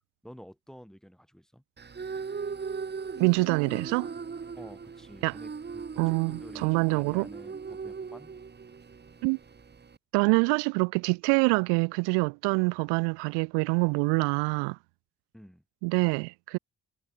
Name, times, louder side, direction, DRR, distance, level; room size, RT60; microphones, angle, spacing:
voice 1, 0.2-1.6 4.6-8.4 15.3-15.6, equal, ahead, 6.4 m, -50 dB
sound 1, 1.8-10.0, right 5 dB, 25° right, 0.9 m, -39 dB
voice 2, 3.2-4.1 5.2-5.4 6.0-7.3 9.2-9.4 10.1-14.8 15.8-16.6, right 33 dB, 80° right, 0.5 m, -25 dB
hypercardioid pair, 45°, 42 cm